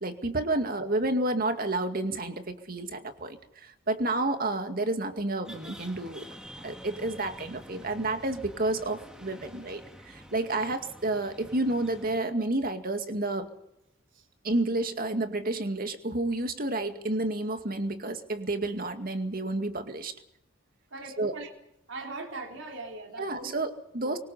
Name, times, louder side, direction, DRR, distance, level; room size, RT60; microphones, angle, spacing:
voice 1, 0.0-6.2 6.6-13.5 14.4-20.1 21.2-21.3 23.2-24.2, right 2 dB, 45° right, 7 dB, 2.2 m, -30 dB
sound 1, 5.4-12.2, equal, 5° right, 2.3 m, -48 dB
voice 2, 20.9-21.5 21.9-23.5, right 3 dB, 65° right, 3 dB, 3.7 m, -40 dB
24.5 x 22.5 x 5.7 m, 0.79 s
head